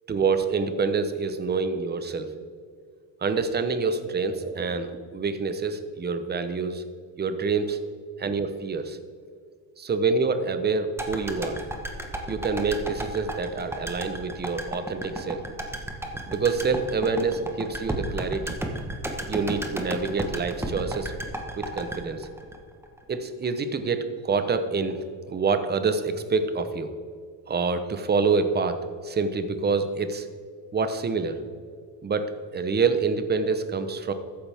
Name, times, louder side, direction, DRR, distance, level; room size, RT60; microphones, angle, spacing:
voice 1, 0.1-2.3 3.2-6.8 7.2-7.8 8.2-9.0 9.8-11.6 12.3-15.4 16.3-18.6 19.3-21.1 21.6-22.3 23.1-25.0 25.3-26.9 27.5-30.3 30.7-31.4 32.0-34.1, right 4 dB, 20° right, 9 dB, 0.8 m, -26 dB
sound 1, 11.0-23.2 23.4-23.5, right 1 dB, 5° right, 1.1 m, -33 dB
13.5 x 10.0 x 3.5 m, 2.1 s
cardioid pair, 140°, 47 cm